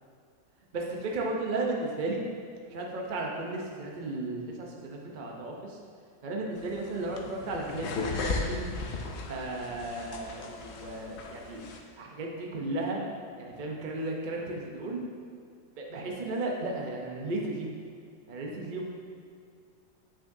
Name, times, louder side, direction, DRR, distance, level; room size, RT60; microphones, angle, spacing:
voice 1, 0.7-2.2 2.7-5.8 6.2-8.7 9.3-13.0 13.4-15.0 15.8-17.7 18.3-18.9, right 2 dB, 60° right, -1 dB, 0.5 m, -34 dB
sound 1, 6.6-11.8, left 4 dB, 75° left, 0.6 m, -36 dB
8.5 x 6.2 x 2.7 m, 2.2 s
omnidirectional pair, 2.0 m